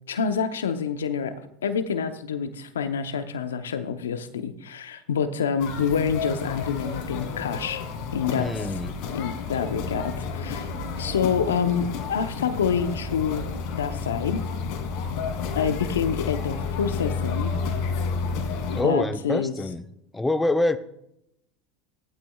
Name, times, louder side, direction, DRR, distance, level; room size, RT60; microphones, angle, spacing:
voice 1, 0.1-7.8 8.1-8.7 9.1-10.7 11.0-13.4 13.7-14.4 15.5-17.5 18.7-19.5, left 6 dB, 85° left, 9 dB, 0.8 m, -27 dB
sound 1, 5.6-18.8, left 4 dB, 65° left, 2.2 m, -31 dB
voice 2, 8.4-9.0 18.7-19.8 20.1-20.8, left 2 dB, 10° left, 9 dB, 0.8 m, -25 dB
15.5 x 12.0 x 2.4 m, 0.80 s
hypercardioid pair, 80°, 0 cm